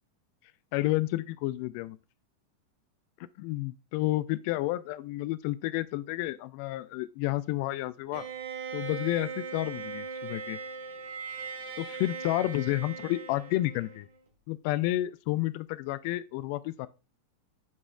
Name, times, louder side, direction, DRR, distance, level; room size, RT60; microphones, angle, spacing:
voice 1, 0.7-2.0 3.4-8.2 8.7-10.6 11.8-14.1 14.5-16.9, left 17 dB, 45° left, 0.3 m, -30 dB
Bowed string instrument, 8.1-14.2, right 5 dB, 60° right, 1.3 m, -39 dB
10.5 x 4.0 x 2.4 m
figure-of-eight pair, 90°, 0 cm